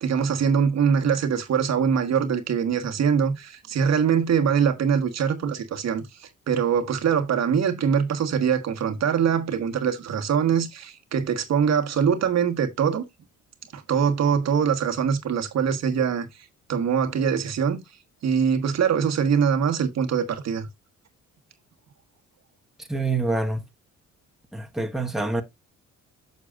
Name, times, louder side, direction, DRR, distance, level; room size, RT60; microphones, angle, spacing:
voice 1, 0.0-13.0 13.7-16.3 16.7-17.8 18.2-20.7, right 7 dB, 60° right, 1.3 m, -23 dB
voice 2, 22.9-23.6 24.5-25.4, right 2 dB, ahead, 1.2 m, -26 dB
8.8 x 6.7 x 2.4 m
cardioid pair, 90°, 30 cm